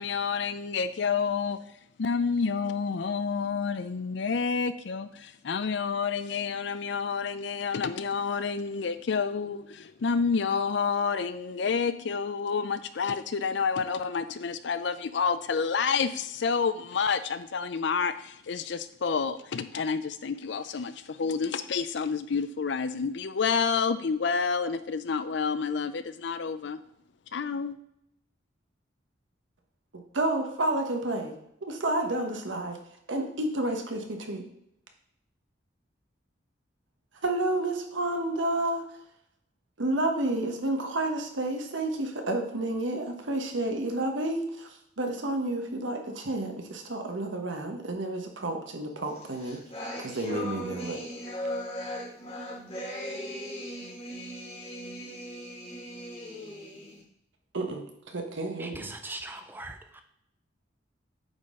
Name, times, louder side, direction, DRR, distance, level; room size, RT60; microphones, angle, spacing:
voice 1, 0.0-1.6 2.0-26.8 27.3-27.8, left 5 dB, 65° left, 0.5 m, -29 dB
voice 2, 29.9-31.3 31.6-32.8 33.1-34.4 37.2-38.8 39.8-49.6 50.0-51.0 57.5-58.9, right 2 dB, 80° right, 1.2 m, -30 dB
sound 1, 49.1-57.0, equal, 30° left, 1.5 m, -38 dB
voice 3, 58.6-60.0, right 2 dB, 10° right, 0.4 m, -40 dB
8.7 x 4.1 x 3.7 m
head